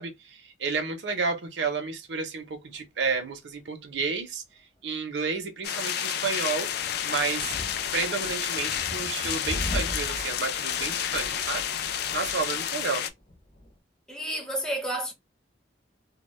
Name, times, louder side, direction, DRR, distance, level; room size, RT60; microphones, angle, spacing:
voice 1, 0.0-4.4 4.8-6.7 7.0-7.6 7.9-11.6 12.1-13.1, right 4 dB, 70° right, 0.6 m, -31 dB
sound 1, 5.6-13.1, left 9 dB, 60° left, 0.3 m, -30 dB
sound 2, 6.3-13.8, left 1 dB, 30° left, 0.8 m, -40 dB
voice 2, 14.1-15.1, right 1 dB, 5° left, 0.5 m, -31 dB
2.1 x 2.0 x 3.0 m
head